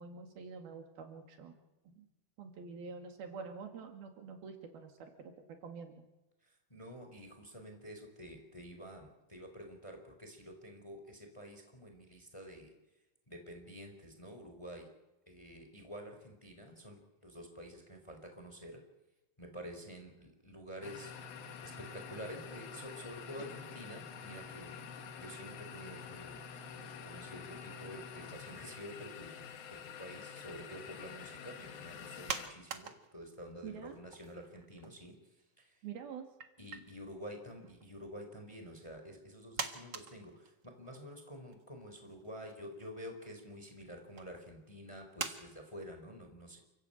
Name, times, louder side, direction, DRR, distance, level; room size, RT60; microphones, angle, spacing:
voice 1, 0.0-1.6 1.9-2.1 2.4-5.3 5.6-6.1 33.6-34.0 35.8-36.3, right 5 dB, 70° right, 5 dB, 4.2 m, -47 dB
voice 2, 6.4-12.7 13.3-14.9 15.2-18.8 19.4-24.9 25.2-26.4 27.0-35.8 36.6-46.6, equal, 10° left, 5 dB, 3.4 m, -49 dB
sound 1, 20.8-32.5, left 6 dB, 70° left, 3.6 m, -48 dB
sound 2, 32.3-33.5 33.9-35.1 35.4-35.5 36.4-36.8 37.6-38.0 38.9-39.0 39.6-41.0 41.5-41.6 42.0-42.6 43.4-43.6 44.2-44.3 45.2-45.4, right 6 dB, 55° right, 1.2 m, -42 dB
29.0 x 15.0 x 8.8 m, 1.0 s
omnidirectional pair, 4.5 m